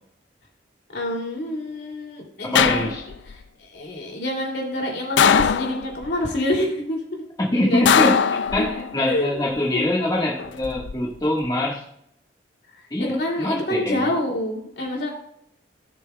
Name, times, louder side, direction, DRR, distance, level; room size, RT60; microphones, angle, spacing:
voice 1, 0.9-2.9 3.3-7.2 7.5-8.0 8.6-8.7 9.0-9.4 9.7-10.0 13.0-15.1, left 1 dB, 70° left, 2.8 m, -27 dB
voice 2, 2.4-3.0 7.5-8.2 8.5-11.8 12.9-14.1, left 1 dB, 20° left, 1.6 m, -24 dB
sound 1, 2.5-3.3 5.2-6.1 7.8-9.0 10.4-10.9, left 7 dB, 85° left, 0.4 m, -20 dB
16.5 x 6.9 x 2.3 m
head